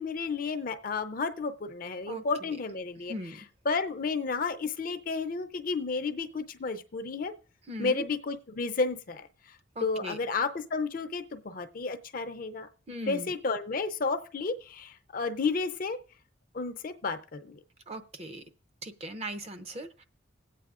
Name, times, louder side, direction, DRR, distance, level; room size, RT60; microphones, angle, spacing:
voice 1, 0.0-3.1 3.7-7.3 7.8-9.6 9.8-12.7 13.1-16.0 16.5-17.6, left 4 dB, 45° left, 9 dB, 0.5 m, -32 dB
voice 2, 2.1-2.5 3.1-3.4 7.7-8.1 9.8-10.2 12.9-13.4 17.9-18.5 18.8-20.0, equal, 35° right, 10 dB, 0.6 m, -39 dB
19.5 x 8.3 x 2.5 m, 0.39 s
head